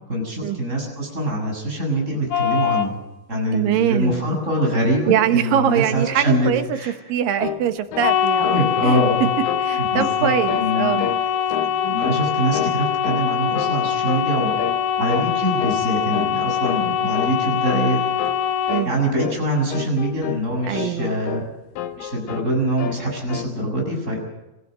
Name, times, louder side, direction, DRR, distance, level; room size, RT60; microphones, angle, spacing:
voice 1, 0.1-3.0 3.3-6.9 8.4-9.3 9.7-11.1 11.8-14.6 15.0-18.0 18.7-21.4 22.0-24.2, right 1 dB, 20° right, 0 dB, 7.5 m, -24 dB
sound 1, 2.3-2.9 8.0-18.9, left 8 dB, 55° left, 1.8 m, -23 dB
voice 2, 3.5-4.2 5.0-6.6 7.1-8.6 8.8-9.0 9.6-11.0 18.7-18.9 20.7-21.1, right 10 dB, 80° right, 9 dB, 2.9 m, -22 dB
sound 2, 7.4-7.7 7.9-8.2 8.4-9.7 10.0-10.2 10.5-10.7 11.0-11.2 11.5-12.3 12.5-13.3 13.5-13.8 14.1-14.3 14.6-14.8 15.1-15.3 15.6-15.9 16.1-16.3 16.6-16.9 17.1-17.4 17.7-17.9 18.2-18.4 18.7-18.9 19.2-19.4 19.7-20.5 20.7-21.5 21.8-22.5 22.8-23.5, left 9 dB, 85° left, 3.0 m, -30 dB
27.5 x 14.5 x 7.7 m, 0.99 s
omnidirectional pair, 3.9 m